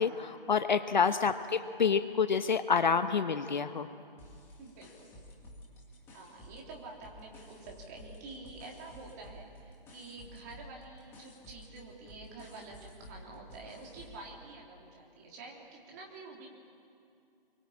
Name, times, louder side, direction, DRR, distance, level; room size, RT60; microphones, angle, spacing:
voice 1, 0.0-3.9, left 6 dB, 50° left, 10 dB, 1.2 m, -28 dB
sound 1, 4.2-6.7 7.0-14.3, left 1 dB, 10° left, 2.1 m, -52 dB
voice 2, 4.6-5.2 6.1-16.5, right 3 dB, 20° right, -2 dB, 3.4 m, -48 dB
26.5 x 23.5 x 8.7 m, 2.5 s
hypercardioid pair, 170°, 29 cm